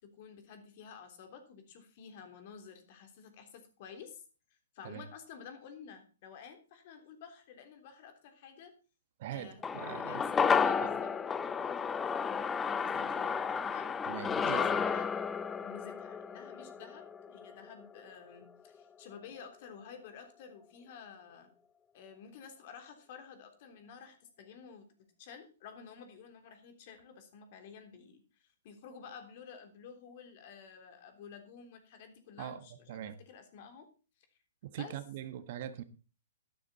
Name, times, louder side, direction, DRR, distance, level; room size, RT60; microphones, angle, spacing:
voice 1, 0.0-4.2 4.7-8.8 9.3-11.1 11.8-12.3 12.6-13.9 14.5-15.1 15.6-21.5 21.9-24.9 25.2-33.9 34.2-34.3 34.8-35.0, left 6 dB, 45° left, 3.4 m, -51 dB
voice 2, 9.2-10.2 10.8-10.9 12.9-13.0 14.1-14.6 32.4-32.6 32.9-33.2 34.6-35.8, right 11 dB, 50° right, 1.4 m, -42 dB
sound 1, 9.6-18.1 18.4-18.5, left 6 dB, 15° left, 0.6 m, -32 dB
12.0 x 11.0 x 4.3 m
figure-of-eight pair, 120°, 0 cm